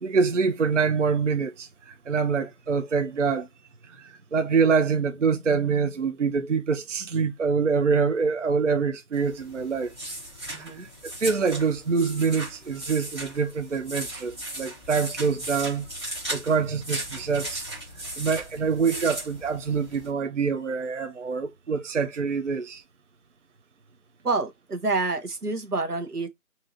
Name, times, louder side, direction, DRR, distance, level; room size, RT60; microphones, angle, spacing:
voice 1, 0.0-3.5 3.9-9.9 10.6-10.9 11.2-17.6 18.2-22.8, right 5 dB, 55° right, 0.5 m, -25 dB
sound 1, 9.1-20.1, right 1 dB, 20° right, 1.2 m, -37 dB
voice 2, 10.5-10.9 24.2-26.3, right 3 dB, 90° right, 1.1 m, -28 dB
2.8 x 2.6 x 4.2 m
figure-of-eight pair, 160°, 44 cm